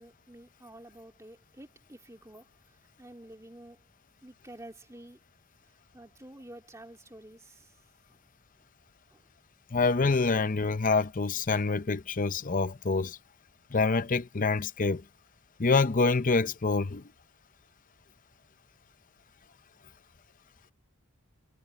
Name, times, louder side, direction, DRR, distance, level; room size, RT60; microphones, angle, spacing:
voice 1, 0.0-3.9 4.2-5.2 5.9-7.8 8.1-8.2 9.1-9.3, right 1 dB, 15° right, 2.5 m, -50 dB
voice 2, 9.7-13.2 13.7-15.0 15.6-17.0, left 4 dB, 35° left, 0.6 m, -26 dB
head